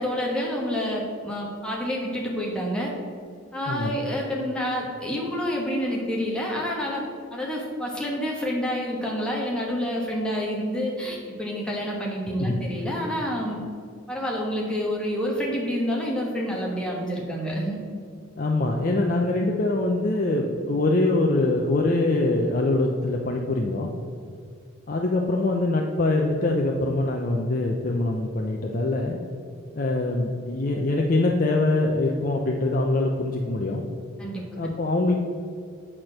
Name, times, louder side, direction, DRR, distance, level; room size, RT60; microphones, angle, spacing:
voice 1, 0.0-2.9 3.5-13.6 14.1-17.8 34.2-34.4, equal, 5° left, -3 dB, 1.3 m, -28 dB
voice 2, 18.4-23.9 24.9-29.2 29.8-33.9 34.6-35.1, left 2 dB, 40° left, 0 dB, 0.6 m, -23 dB
8.6 x 4.4 x 6.3 m, 2.2 s
head